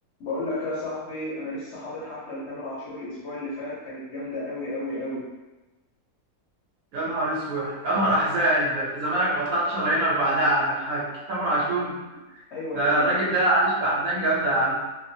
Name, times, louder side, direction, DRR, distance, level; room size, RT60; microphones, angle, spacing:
voice 1, 0.2-5.3 12.5-13.1, left 2 dB, 55° left, -8 dB, 0.8 m, -33 dB
voice 2, 6.9-12.0 12.7-14.7, right 1 dB, 65° right, -6 dB, 1.2 m, -24 dB
2.9 x 2.0 x 2.6 m, 1.1 s
omnidirectional pair, 1.7 m